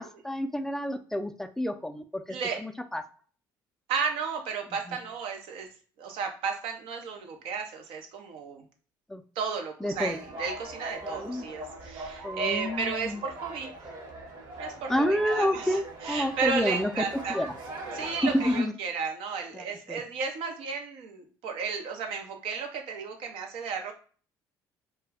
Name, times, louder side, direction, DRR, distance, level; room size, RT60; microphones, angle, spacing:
voice 1, 0.0-3.0 4.9-5.0 9.1-9.2 9.8-10.2 11.0-11.5 12.2-13.2 14.9-17.5 18.2-18.7 19.5-20.0, left 1 dB, 5° left, 7 dB, 0.4 m, -29 dB
voice 2, 2.3-2.6 3.9-5.7 6.0-8.6 9.4-13.7 14.6-17.4 17.9-23.9, right 5 dB, 65° right, 3 dB, 0.6 m, -33 dB
sound 1, 9.9-18.6, right 1 dB, 45° right, 1.0 m, -40 dB
2.2 x 2.2 x 3.4 m, 0.40 s
hypercardioid pair, 60°, 10 cm